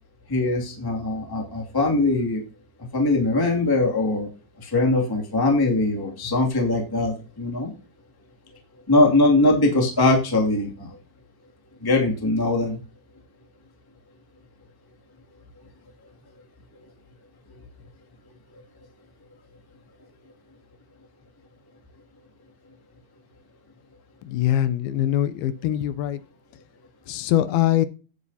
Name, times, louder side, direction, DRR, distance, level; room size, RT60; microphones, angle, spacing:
voice 1, 0.3-2.4 2.9-4.3 4.6-7.7 8.9-10.9 11.8-12.8, left 2 dB, 10° left, 0 dB, 1.3 m, -21 dB
voice 2, 24.2-26.2 27.1-27.9, left 12 dB, 80° left, 13 dB, 2.5 m, -23 dB
16.5 x 8.0 x 2.8 m, 0.35 s
omnidirectional pair, 4.4 m